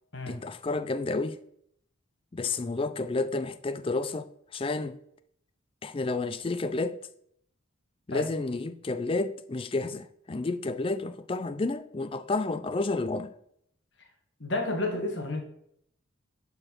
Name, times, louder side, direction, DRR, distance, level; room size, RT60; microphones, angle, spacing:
voice 1, 0.3-1.4 2.3-5.0 5.8-7.0 8.1-13.3, left 3 dB, 25° left, 0.4 m, -31 dB
voice 2, 14.4-15.4, left 2 dB, 60° left, 1.6 m, -30 dB
11.5 x 4.4 x 4.4 m
head